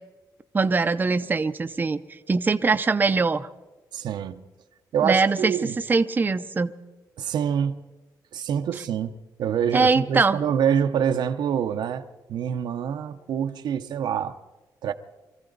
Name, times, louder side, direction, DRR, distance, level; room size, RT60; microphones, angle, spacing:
voice 1, 0.5-2.0 2.3-3.5 5.0-5.5 5.9-6.7 9.7-10.4, right 4 dB, 25° right, 0.6 m, -22 dB
voice 2, 3.9-4.4 4.9-5.7 7.2-7.8 8.3-9.1 9.4-14.4 14.8-14.9, right 8 dB, 80° right, 0.8 m, -26 dB
25.0 x 14.5 x 4.0 m
cardioid pair, 100°, 7 cm